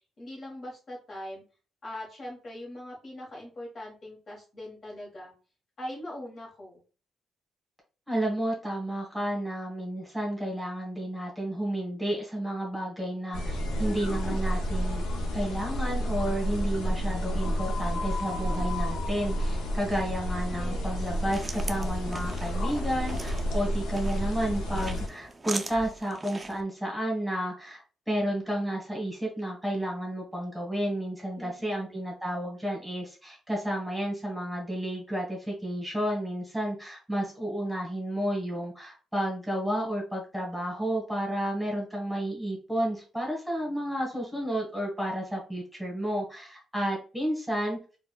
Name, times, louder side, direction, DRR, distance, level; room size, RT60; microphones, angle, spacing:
voice 1, 0.2-1.4 1.8-5.3 5.8-6.8 20.5-21.0 31.4-31.9, left 1 dB, 45° left, -3 dB, 1.3 m, -41 dB
voice 2, 8.1-27.8 28.1-47.8, right 1 dB, 5° right, -2 dB, 1.4 m, -31 dB
sound 1, 13.3-25.1, equal, 85° left, 0.7 m, -30 dB
sound 2, 20.9-26.6, right 2 dB, 20° right, 0.4 m, -41 dB
4.0 x 2.3 x 2.3 m, 0.36 s
cardioid pair, 90°, 0 cm